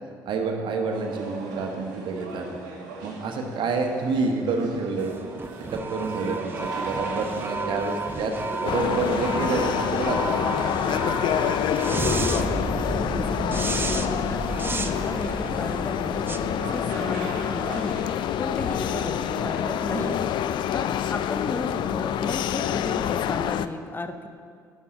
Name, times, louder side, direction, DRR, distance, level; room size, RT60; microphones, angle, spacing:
voice 1, 0.2-2.4 3.0-5.1 5.7-10.5, right 3 dB, 55° right, 3 dB, 1.2 m, -28 dB
sound 1, 0.9-20.2, right 3 dB, 75° right, 1.1 m, -39 dB
sound 2, 5.0-17.4, right 3 dB, 20° right, 0.6 m, -32 dB
sound 3, 8.7-23.7, left 10 dB, 50° left, 0.3 m, -27 dB
voice 2, 11.9-12.3 12.9-18.0 18.4-20.2 20.7-24.3, left 3 dB, 20° left, 8 dB, 0.7 m, -34 dB
11.5 x 5.5 x 5.2 m, 2.2 s
figure-of-eight pair, 50°, 10 cm